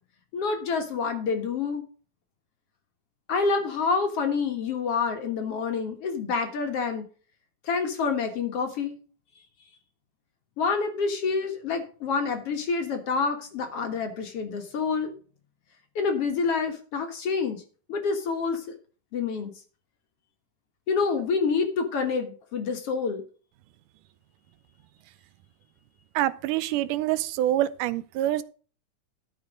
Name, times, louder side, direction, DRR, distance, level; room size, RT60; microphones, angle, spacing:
voice 1, 0.3-1.8 3.3-7.1 7.6-9.0 10.6-15.1 16.0-17.6 17.9-18.6 19.1-19.5 20.9-23.2, left 5 dB, 55° left, 2.3 m, -27 dB
voice 2, 26.2-28.4, right 13 dB, 85° right, 2.2 m, -26 dB
13.0 x 6.4 x 5.1 m
omnidirectional pair, 3.6 m